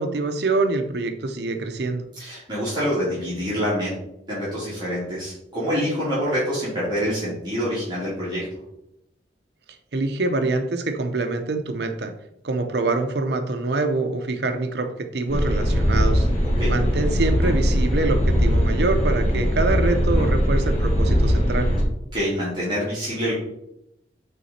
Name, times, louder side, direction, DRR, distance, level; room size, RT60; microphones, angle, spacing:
voice 1, 0.0-2.0 9.9-12.1 12.4-16.3 16.7-21.7, right 3 dB, 65° right, 7 dB, 0.6 m, -25 dB
voice 2, 2.2-3.9 4.3-8.5 16.6-16.7 22.1-23.3, equal, 25° right, -10 dB, 2.8 m, -26 dB
sound 1, 15.3-21.8, equal, 35° left, 1.5 m, -20 dB
8.8 x 4.0 x 4.2 m, 0.83 s
head